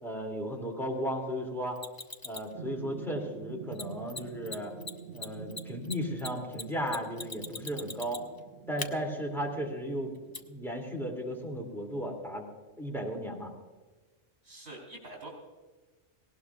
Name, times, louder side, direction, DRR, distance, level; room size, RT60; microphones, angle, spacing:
voice 1, 0.0-1.8 2.2-4.7 5.1-8.2 8.7-10.1 10.5-12.5 12.8-13.5, equal, ahead, 0 dB, 2.5 m, -35 dB
Mechanisms, 1.8-2.5 3.7-3.8 4.1-4.2 4.4-4.6 4.8-8.4 8.8-8.9 10.3-10.4, left 3 dB, 20° left, 0.6 m, -39 dB
sound 1, 2.5-11.6, right 7 dB, 80° right, 1.0 m, -47 dB
voice 2, 14.4-15.3, right 2 dB, 55° right, -1 dB, 3.6 m, -45 dB
18.5 x 18.0 x 2.4 m, 1.3 s
omnidirectional pair, 1.3 m